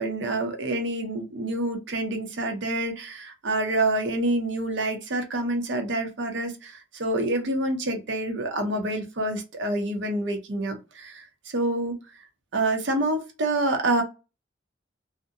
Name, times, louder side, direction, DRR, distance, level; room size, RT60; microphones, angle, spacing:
voice 1, 0.0-12.0 12.5-14.0, right 2 dB, 65° right, 0.7 m, -27 dB
2.4 x 2.1 x 2.6 m
head